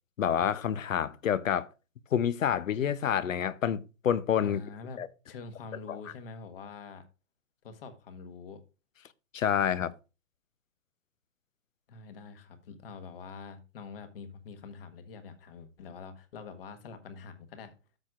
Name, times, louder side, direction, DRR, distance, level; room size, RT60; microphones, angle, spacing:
voice 1, 0.2-1.7 2.1-4.6 5.0-5.1 5.9-6.0 9.3-9.9, left 9 dB, 80° left, 0.8 m, -28 dB
voice 2, 4.4-7.1 7.6-8.6 11.9-17.7, left 4 dB, 45° left, 1.4 m, -45 dB
13.0 x 6.1 x 2.4 m
hypercardioid pair, 150°, 38 cm